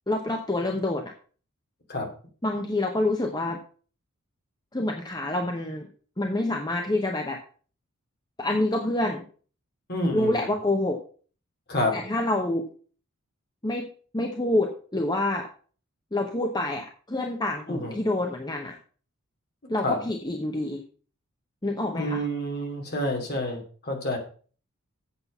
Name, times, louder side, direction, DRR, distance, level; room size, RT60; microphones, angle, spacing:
voice 1, 0.1-1.1 2.4-3.6 4.7-5.9 6.2-7.4 8.4-9.2 10.1-11.0 11.9-12.7 13.6-13.9 14.1-15.5 16.1-18.8 19.7-20.8 21.6-22.2, left 1 dB, 20° left, 3 dB, 0.9 m, -27 dB
voice 2, 9.9-10.5 11.7-12.0 17.7-17.9 19.8-20.0 21.9-24.2, left 1 dB, 45° left, 2 dB, 2.7 m, -28 dB
8.3 x 7.6 x 5.5 m, 0.41 s
head